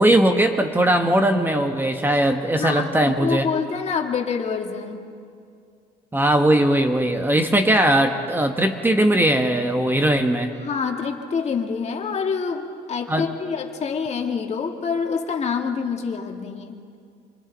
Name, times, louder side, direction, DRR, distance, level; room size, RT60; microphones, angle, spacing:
voice 1, 0.0-3.5 6.1-10.5 13.1-13.3, right 1 dB, 10° right, 5 dB, 1.2 m, -19 dB
voice 2, 2.6-5.1 10.5-16.8, left 5 dB, 40° left, 3 dB, 2.1 m, -26 dB
28.0 x 25.5 x 4.0 m, 2.3 s
cardioid pair, 110°, 17 cm